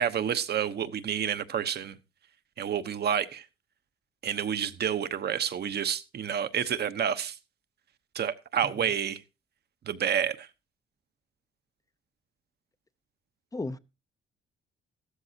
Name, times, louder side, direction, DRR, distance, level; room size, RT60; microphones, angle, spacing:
voice 1, 0.0-2.0 2.6-3.4 4.2-7.4 8.1-9.2 9.9-10.5, right 8 dB, 55° right, 1.0 m, -29 dB
voice 2, 8.6-8.9 13.5-13.8, left 2 dB, 15° left, 0.7 m, -35 dB
15.0 x 13.0 x 2.8 m
cardioid pair, 90°, 20 cm